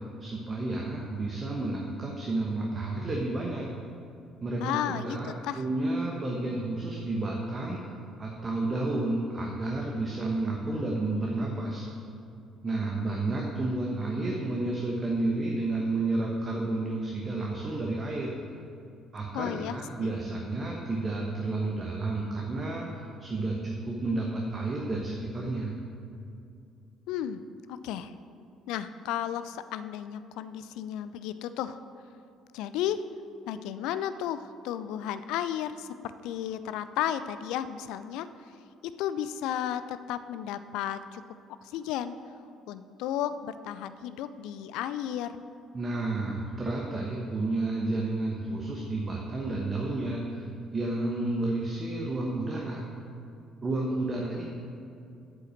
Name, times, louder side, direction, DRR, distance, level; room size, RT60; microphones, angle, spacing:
voice 1, 0.2-3.7 4.4-7.9 8.2-11.9 12.6-18.3 19.1-25.7 45.7-50.5 50.7-52.8 53.6-54.4, right 2 dB, 35° right, -1 dB, 1.2 m, -31 dB
voice 2, 4.6-5.6 19.3-20.1 27.1-27.4 27.8-28.1 28.7-31.8 32.5-33.0 33.5-38.3 38.8-41.2 41.7-42.2 42.7-45.4, left 10 dB, 65° left, 13 dB, 0.3 m, -33 dB
8.0 x 5.6 x 7.4 m, 2.6 s
figure-of-eight pair, 50°, 0 cm